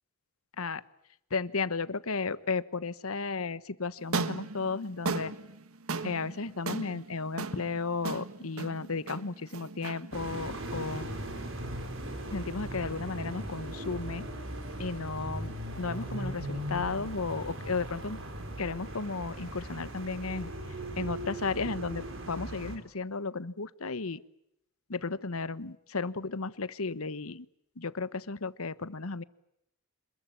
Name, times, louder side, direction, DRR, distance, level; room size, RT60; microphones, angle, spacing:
voice 1, 1.3-5.3 6.0-11.2 12.3-14.2 14.8-18.2 18.6-20.5 21.0-24.2 24.9-27.5 27.8-29.2, left 4 dB, 90° left, 16 dB, 1.2 m, -34 dB
sound 1, 4.0-12.3, right 3 dB, 90° right, 1.5 m, -38 dB
sound 2, 10.1-22.8, right 1 dB, 65° right, 5.1 m, -38 dB
27.0 x 21.5 x 8.9 m, 0.79 s
head